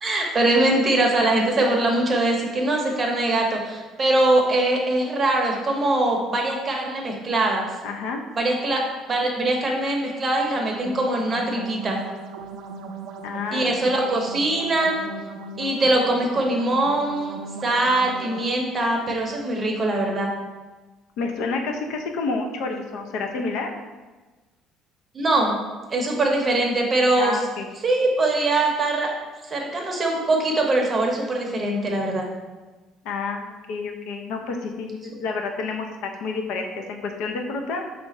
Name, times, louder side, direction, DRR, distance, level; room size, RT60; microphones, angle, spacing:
voice 1, 0.0-7.7 8.3-8.8 9.1-12.0 13.5-15.1 15.6-17.3 17.6-20.3 25.1-25.6 25.9-27.4 27.8-29.1 29.5-32.3, right 2 dB, 25° right, 0 dB, 0.7 m, -22 dB
voice 2, 7.8-8.2 13.2-13.7 14.1-14.3 21.2-23.7 27.2-27.7 33.0-37.8, left 4 dB, 75° left, 3 dB, 0.5 m, -29 dB
sound 1, 10.4-18.4, right 3 dB, 70° right, 0.4 m, -38 dB
4.6 x 2.5 x 4.0 m, 1.3 s
cardioid pair, 145°, 0 cm